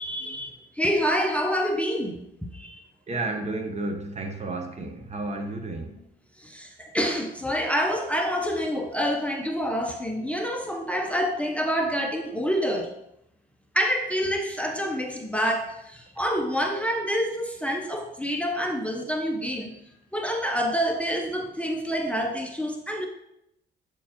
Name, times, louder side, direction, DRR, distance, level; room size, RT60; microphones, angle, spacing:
voice 1, 0.0-2.2 2.5-2.8 6.4-12.9 13.7-19.7 20.1-23.1, equal, 5° left, 3 dB, 0.7 m, -27 dB
voice 2, 3.1-6.0, right 2 dB, 35° right, 5 dB, 0.9 m, -32 dB
8.3 x 4.4 x 2.9 m, 0.79 s
cardioid pair, 90°, 20 cm